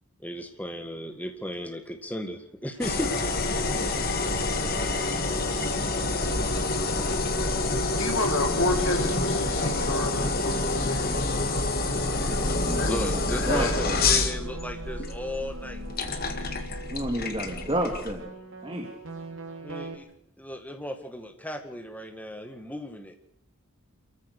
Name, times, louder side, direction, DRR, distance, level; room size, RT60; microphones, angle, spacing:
voice 1, 0.2-3.1 7.0-7.3 12.2-12.5 12.8-15.8 19.6-20.1 20.4-23.1, equal, 5° left, 5 dB, 1.9 m, -36 dB
sound 1, 2.8-18.1, left 3 dB, 40° left, 1.9 m, -27 dB
sound 2, 7.9-19.9, right 2 dB, 60° right, 3.5 m, -42 dB
voice 2, 8.0-11.5 12.7-12.9 13.3-14.3, left 2 dB, 60° left, 4 dB, 3.0 m, -31 dB
voice 3, 12.7-13.1 13.5-14.0 16.9-18.3 18.6-18.9, right 1 dB, 25° right, 2 dB, 2.1 m, -30 dB
27.0 x 14.5 x 6.6 m, 0.71 s
head